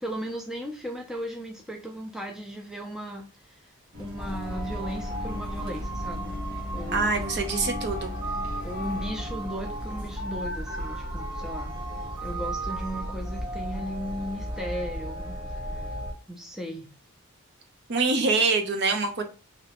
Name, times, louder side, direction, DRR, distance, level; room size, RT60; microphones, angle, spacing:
voice 1, 0.0-3.7 4.0-6.4 6.7-7.1 8.6-11.8 12.2-15.4 15.7-15.8 16.3-16.9, equal, ahead, 1 dB, 0.4 m, -36 dB
sound 1, 3.9-14.2, left 2 dB, 85° right, 1.4 m, -41 dB
sound 2, 4.2-16.1, right 1 dB, 20° right, 1.0 m, -34 dB
voice 2, 6.9-8.1 17.9-19.2, right 4 dB, 50° right, 5 dB, 0.6 m, -25 dB
3.1 x 2.8 x 2.9 m, 0.32 s
head